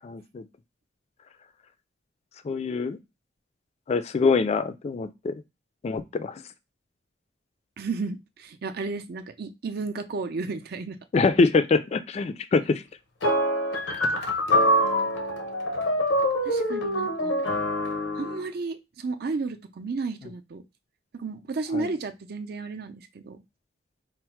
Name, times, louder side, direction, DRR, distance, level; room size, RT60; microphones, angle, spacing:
voice 1, 0.0-0.5 2.4-3.0 3.9-5.3 5.8-6.4 11.1-12.8 21.7-21.9, left 4 dB, 35° left, 11 dB, 0.3 m, -24 dB
voice 2, 7.8-11.0 14.6-15.1 16.4-17.4 18.1-20.6 21.1-23.4, right 3 dB, 55° right, 8 dB, 0.5 m, -33 dB
sound 1, 13.2-18.4, equal, 90° left, 0.8 m, -25 dB
4.3 x 2.1 x 4.4 m, 0.24 s
head